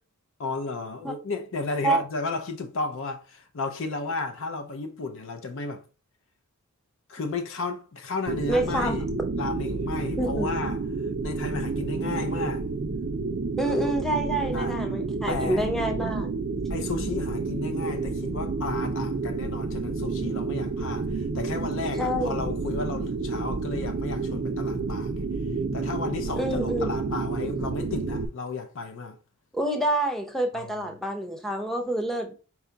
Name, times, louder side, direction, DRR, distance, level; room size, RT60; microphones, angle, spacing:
voice 1, 0.4-5.8 7.1-9.0 9.3-10.8 11.2-12.6 13.6-13.9 14.5-14.7 15.3-15.7 16.7-25.3 25.7-29.2 30.5-30.9, left 3 dB, 60° left, 0.5 m, -33 dB
sound 1, 8.3-28.3, right 4 dB, 45° right, 0.4 m, -30 dB
voice 2, 8.5-9.0 10.2-10.5 13.6-16.3 22.0-22.4 26.3-26.9 29.5-32.3, right 1 dB, ahead, 0.6 m, -27 dB
4.5 x 2.3 x 3.9 m
head